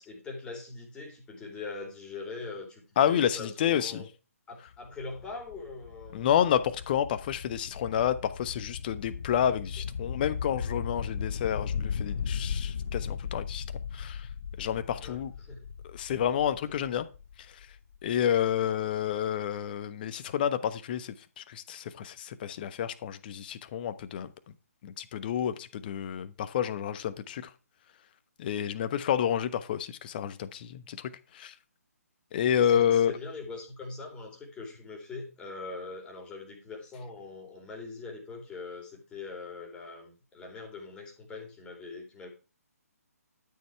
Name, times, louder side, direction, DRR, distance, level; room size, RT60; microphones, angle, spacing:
voice 1, 0.0-4.1 4.5-6.3 15.0-15.7 32.4-42.3, left 3 dB, 10° left, 3.8 m, -42 dB
voice 2, 3.0-4.1 6.1-13.6 13.9-14.3 14.6-15.3 15.8-17.1 17.4-17.7 18.0-24.3 24.8-27.5 28.4-31.5 32.3-33.2, left 9 dB, 35° left, 1.1 m, -29 dB
sound 1, 4.7-18.4, left 6 dB, 55° left, 0.9 m, -37 dB
12.5 x 7.0 x 4.6 m
figure-of-eight pair, 140°, 9 cm